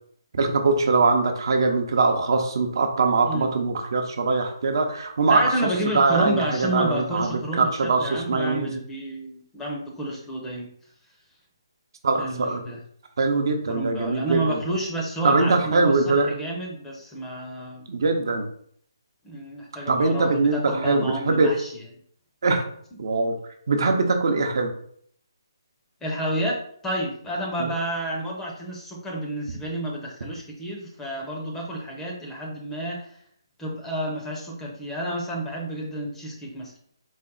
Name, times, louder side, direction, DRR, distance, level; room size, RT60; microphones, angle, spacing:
voice 1, 0.3-5.4 5.9-8.7 12.0-12.6 13.2-14.6 15.2-16.3 17.9-18.4 19.9-21.5 22.4-22.6 23.0-23.3 23.7-24.7 27.6-27.7, right 3 dB, 60° right, 4 dB, 0.7 m, -22 dB
voice 2, 5.3-10.7 12.2-12.8 13.7-17.9 19.2-21.7 26.0-33.1 33.6-36.7, right 1 dB, 10° left, -1 dB, 0.6 m, -30 dB
4.1 x 2.0 x 3.8 m, 0.63 s
hypercardioid pair, 155°, 3 cm